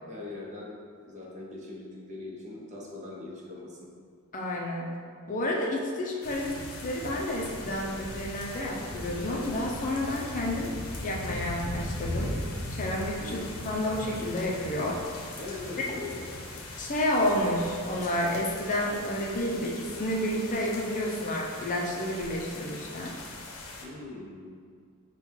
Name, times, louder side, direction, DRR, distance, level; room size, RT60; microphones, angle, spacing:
voice 1, 0.1-0.7 1.0-3.8 13.2-13.5 15.3-16.6 23.8-24.5, left 2 dB, 35° right, -4 dB, 0.8 m, -41 dB
voice 2, 4.3-4.9 5.3-10.7 11.0-12.4 12.7-13.3 13.6-15.0 16.8-23.1, left 1 dB, 40° left, -2 dB, 0.5 m, -30 dB
sound 1, 6.2-23.8, left 1 dB, 80° left, 0.7 m, -39 dB
5.4 x 2.3 x 4.3 m, 2.1 s
head